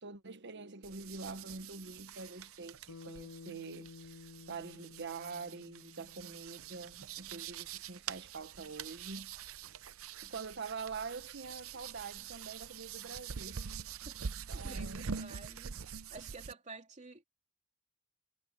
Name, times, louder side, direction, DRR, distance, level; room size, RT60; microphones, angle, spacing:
voice 1, 0.0-4.1 4.5-9.3 10.2-13.7 14.5-15.0, right 4 dB, 55° right, 1.3 m, -45 dB
sound 1, 0.8-16.5, right 6 dB, 85° right, 0.7 m, -45 dB
Bass guitar, 2.9-7.3, left 4 dB, 70° left, 0.5 m, -53 dB
voice 2, 14.5-15.8 16.1-17.2, right 3 dB, 35° right, 2.9 m, -50 dB
head